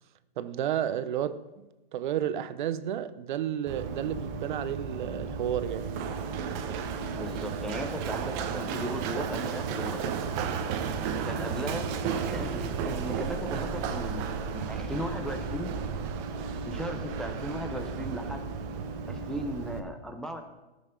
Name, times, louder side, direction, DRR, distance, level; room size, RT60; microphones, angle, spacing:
voice 1, 0.4-1.4 1.9-5.9, right 10 dB, 55° right, 0.7 m, -31 dB
Run, 3.7-19.8, right 6 dB, 30° right, 1.0 m, -33 dB
voice 2, 7.1-10.1 11.2-11.9 12.3-14.3 14.5-15.7 16.7-18.5 19.1-20.4, equal, ahead, 0.6 m, -37 dB
14.0 x 7.0 x 5.1 m
hypercardioid pair, 140°, 29 cm